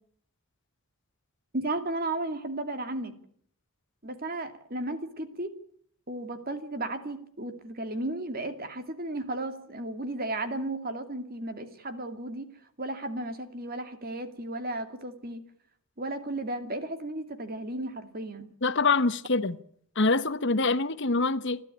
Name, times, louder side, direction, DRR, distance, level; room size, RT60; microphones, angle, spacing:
voice 1, 1.5-3.1 4.0-5.5 6.1-12.5 12.8-15.4 16.0-18.5, right 2 dB, 40° right, 2.5 m, -34 dB
voice 2, 18.6-19.6 20.0-21.6, left 3 dB, 55° left, 1.1 m, -25 dB
29.0 x 12.0 x 9.8 m
head